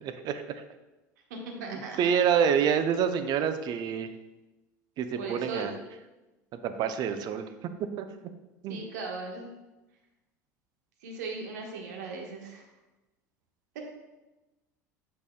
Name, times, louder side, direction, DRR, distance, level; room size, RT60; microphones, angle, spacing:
voice 1, 0.0-0.4 1.7-4.1 5.0-5.8 6.5-7.5 8.0-8.1 8.6-8.8, right 7 dB, 45° right, 9 dB, 0.6 m, -27 dB
voice 2, 1.3-2.0 5.2-5.7 8.7-9.5 11.0-12.6 13.7-13.8, right 3 dB, 70° right, 1 dB, 1.2 m, -38 dB
8.1 x 5.3 x 2.2 m, 1.1 s
figure-of-eight pair, 70°, 10 cm